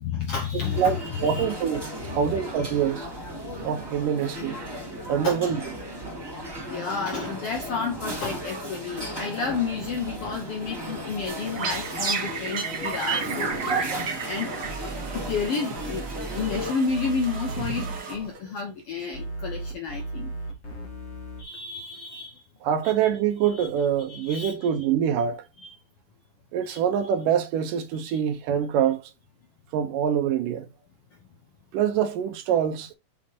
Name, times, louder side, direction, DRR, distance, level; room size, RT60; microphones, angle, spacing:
voice 1, 0.0-1.5 2.1-2.2 5.2-5.4 6.7-14.6 15.1-20.3 21.4-22.4 22.8-22.9 23.4-23.7 24.1-24.6 25.6-25.8 26.6-26.8 28.0-28.2, left 5 dB, 85° left, 1.3 m, -31 dB
sound 1, 0.6-16.7, equal, 10° right, 1.9 m, -36 dB
voice 2, 0.8-3.1 3.6-4.6 5.1-5.6 22.6-25.4 26.5-29.0 29.7-30.7 31.7-32.9, right 8 dB, 70° right, 2.3 m, -25 dB
sound 2, 11.3-18.6, right 5 dB, 50° right, 1.4 m, -32 dB
sound 3, 14.6-15.4 15.8-18.0 19.1-21.4, right 2 dB, 30° left, 1.2 m, -35 dB
6.3 x 5.7 x 2.9 m
omnidirectional pair, 4.3 m